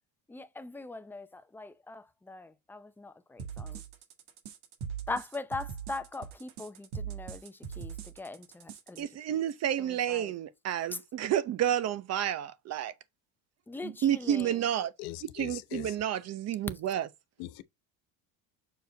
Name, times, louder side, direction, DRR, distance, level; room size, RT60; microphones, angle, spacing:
voice 1, 0.3-3.8 5.1-9.4 9.8-10.3 10.9-11.0 13.7-14.6, left 3 dB, 5° left, 0.6 m, -41 dB
sound 1, 3.4-9.0, right 7 dB, 80° right, 1.9 m, -41 dB
voice 2, 9.0-12.9 13.8-14.9 15.3-17.1, right 10 dB, 45° right, 0.9 m, -30 dB
voice 3, 15.0-16.0 17.4-17.6, left 17 dB, 85° left, 0.9 m, -41 dB
6.6 x 4.6 x 4.0 m
cardioid pair, 130°, 36 cm